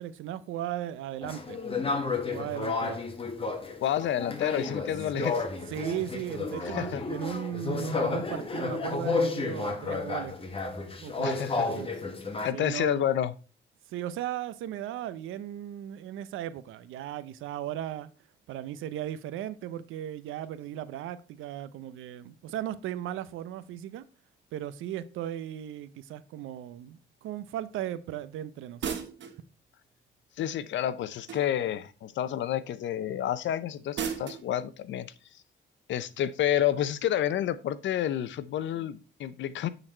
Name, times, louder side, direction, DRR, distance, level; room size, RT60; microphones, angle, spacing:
voice 1, 0.0-1.6 2.3-3.0 5.1-5.3 5.7-10.4 11.0-11.9 12.5-13.1 13.9-18.1 18.5-24.0 24.5-29.1, right 11 dB, 85° right, 0.6 m, -36 dB
sound 1, 1.2-12.5, left 3 dB, 30° left, 1.6 m, -32 dB
voice 2, 3.8-5.4 6.7-7.0 11.2-11.7 12.4-13.3 30.4-35.1 35.9-39.7, left 11 dB, 70° left, 0.7 m, -29 dB
sound 2, 28.8-29.4 31.3-31.7 33.9-34.5, right 7 dB, 65° right, 1.3 m, -34 dB
8.9 x 4.0 x 4.4 m
cardioid pair, 90°, 20 cm